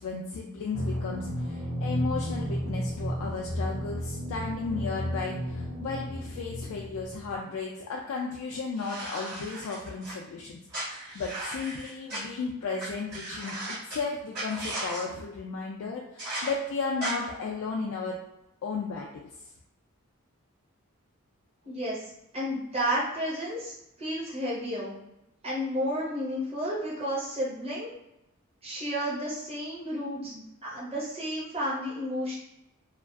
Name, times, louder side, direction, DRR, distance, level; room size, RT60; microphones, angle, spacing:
voice 1, 0.0-18.2 18.6-19.3, left 4 dB, 65° left, -1 dB, 0.3 m, -34 dB
sound 1, 0.7-7.4, equal, 65° right, 0.5 m, -33 dB
sound 2, 8.8-10.1 10.7-12.2 12.8-12.9 13.1-14.0 14.3-15.0 16.2-16.5 17.0-17.1, right 1 dB, 45° right, 1.3 m, -36 dB
voice 2, 21.6-24.9 25.4-27.9 28.6-32.3, equal, 30° right, -8 dB, 0.8 m, -32 dB
2.4 x 2.3 x 2.3 m, 0.89 s
head